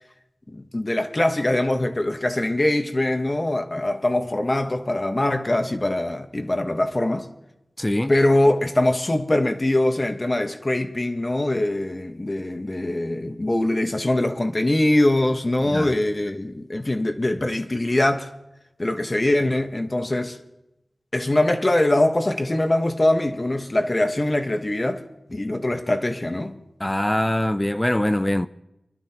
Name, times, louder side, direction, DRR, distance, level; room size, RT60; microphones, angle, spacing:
voice 1, 0.5-7.3 8.1-18.3 18.8-20.4 21.1-26.6, left 1 dB, 35° left, 1.3 m, -22 dB
voice 2, 7.8-8.1 15.7-15.9 26.8-28.5, left 1 dB, 15° left, 0.5 m, -23 dB
28.0 x 12.0 x 3.0 m
wide cardioid pair, 70°, 0 cm